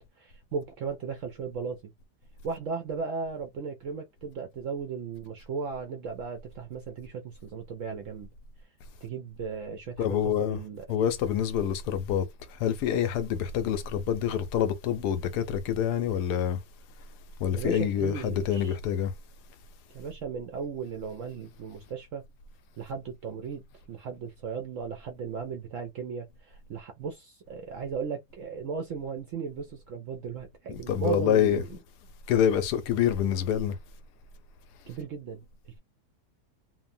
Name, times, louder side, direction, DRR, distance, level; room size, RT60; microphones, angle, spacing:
voice 1, 0.0-1.9 2.4-8.3 9.0-10.8 17.6-18.8 19.9-22.2 22.8-23.6 23.9-31.7 34.9-35.8, right 5 dB, 70° right, 0.7 m, -36 dB
voice 2, 10.0-10.6 10.9-16.6 17.4-19.1 30.7-31.8 32.3-33.8, left 9 dB, 75° left, 1.1 m, -27 dB
3.0 x 2.1 x 2.6 m
omnidirectional pair, 1.8 m